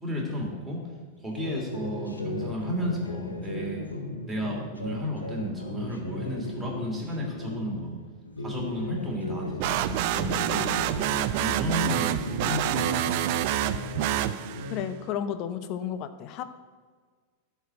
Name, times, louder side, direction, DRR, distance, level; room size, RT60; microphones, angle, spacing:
voice 1, 0.0-0.8 1.2-3.9 4.2-8.0 8.4-10.9 11.3-13.3, equal, 5° right, -3 dB, 2.9 m, -33 dB
sound 1, 1.4-7.8 8.3-11.6 11.8-15.0, left 2 dB, 80° left, 1.2 m, -36 dB
sound 2, 9.6-14.8, right 12 dB, 45° right, 0.4 m, -27 dB
voice 2, 14.7-16.4, left 9 dB, 40° left, 11 dB, 0.7 m, -32 dB
11.0 x 4.7 x 7.9 m, 1.5 s
figure-of-eight pair, 90°, 0 cm